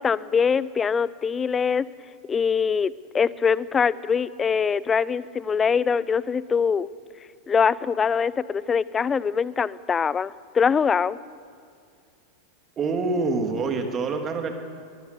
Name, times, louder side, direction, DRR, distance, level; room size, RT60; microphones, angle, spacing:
voice 1, 0.0-1.9 2.3-6.9 7.5-11.2, left 6 dB, 20° left, 20 dB, 0.6 m, -23 dB
voice 2, 12.8-14.5, right 3 dB, 25° right, 4 dB, 3.0 m, -26 dB
22.0 x 21.5 x 6.8 m, 2.3 s
figure-of-eight pair, 90°, 0 cm